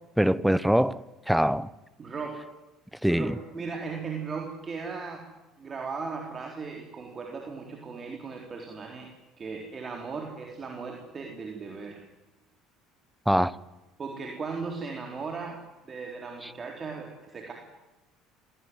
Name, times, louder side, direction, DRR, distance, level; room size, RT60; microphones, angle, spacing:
voice 1, 0.2-1.7 3.0-3.3 13.3-13.5, equal, 5° right, 0.8 m, -23 dB
voice 2, 2.0-2.4 3.1-5.3 5.6-9.1 9.4-12.0 14.0-17.5, right 4 dB, 35° right, 3.9 m, -37 dB
25.5 x 17.0 x 9.5 m
supercardioid pair, 85°, 0 cm